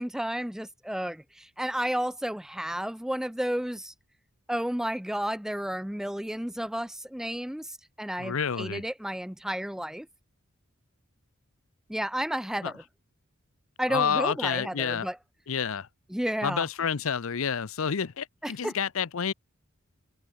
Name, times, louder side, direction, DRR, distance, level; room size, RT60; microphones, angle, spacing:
voice 1, 0.0-3.9 4.5-10.1 11.9-12.8 13.8-15.2 16.1-16.7 18.4-18.8, equal, ahead, 0.4 m, -32 dB
voice 2, 8.2-8.8 12.6-12.7 13.9-15.1 15.5-15.9 16.4-19.3, left 7 dB, 75° left, 0.6 m, -29 dB
head